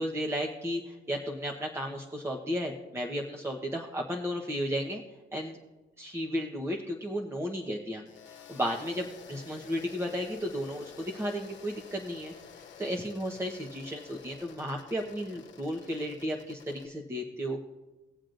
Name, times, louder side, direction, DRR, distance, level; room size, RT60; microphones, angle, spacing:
voice 1, 0.0-5.0 5.3-5.6 6.0-8.1 8.3-17.6, equal, 15° right, 0 dB, 1.1 m, -34 dB
sound 1, 8.1-16.9, left 7 dB, 70° left, 1.0 m, -51 dB
20.0 x 7.4 x 2.6 m, 1.1 s
cardioid pair, 90°, 20 cm